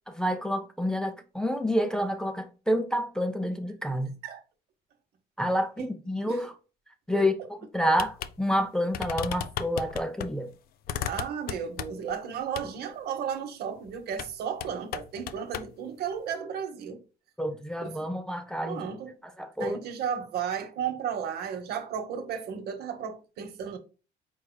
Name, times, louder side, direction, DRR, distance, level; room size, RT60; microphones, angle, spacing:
voice 1, 0.1-4.2 5.4-6.6 7.1-7.3 7.7-10.5 17.4-18.9 19.4-19.8, equal, 5° left, 0.5 m, -28 dB
sound 1, 8.0-8.3 8.6-8.7 8.9-10.3 10.9-12.1 12.6-12.7 14.1-14.3 14.6-15.7, left 9 dB, 65° left, 0.4 m, -35 dB
voice 2, 11.1-17.0 17.8-18.1 18.7-19.2 19.6-23.8, right 7 dB, 70° right, 1.0 m, -34 dB
4.7 x 4.5 x 2.2 m
cardioid pair, 110°, 17 cm